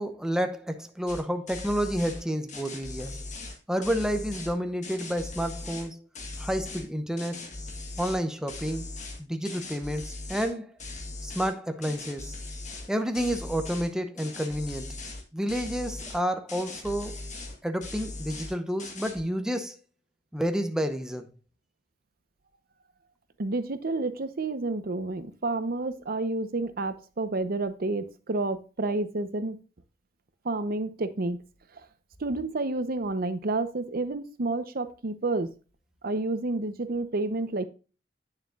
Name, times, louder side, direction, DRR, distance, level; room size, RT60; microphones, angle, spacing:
voice 1, 0.0-3.2 3.7-6.0 6.4-7.5 8.0-8.9 9.2-10.7 11.2-12.4 12.9-15.0 15.3-17.2 17.6-19.8 20.3-21.3, equal, 5° right, 0.7 m, -30 dB
sound 1, 1.1-1.2 1.5-2.2 2.5-4.5 4.8-5.9 6.1-6.9 7.2-8.2 8.5-10.5 10.8-11.5 11.8-12.9 13.1-13.9 14.2-15.2 15.5-16.2 16.5-17.6 17.8-18.5 18.8-19.2, left 2 dB, 40° left, 1.6 m, -39 dB
voice 2, 23.4-29.6 30.4-31.4 32.2-35.5 36.0-37.7, right 2 dB, 55° right, 0.7 m, -30 dB
9.3 x 6.5 x 2.4 m
head